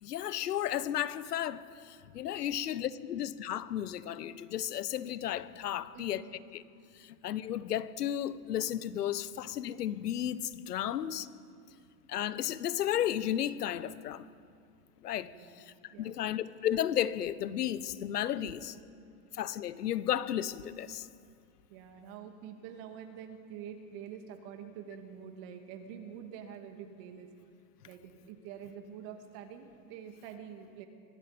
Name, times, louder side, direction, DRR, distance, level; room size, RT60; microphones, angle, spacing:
voice 1, 0.0-6.2 6.5-6.6 7.0-11.3 12.1-14.2 15.0-15.3 15.6-18.7 19.3-21.1, left 11 dB, 85° left, 1.1 m, -33 dB
voice 2, 5.9-6.4 10.8-11.2 15.0-15.6 15.9-16.2 18.4-18.8 21.7-27.3 27.8-30.9, right 8 dB, 50° right, 2.6 m, -47 dB
24.5 x 22.5 x 5.2 m
hypercardioid pair, 130°, 46 cm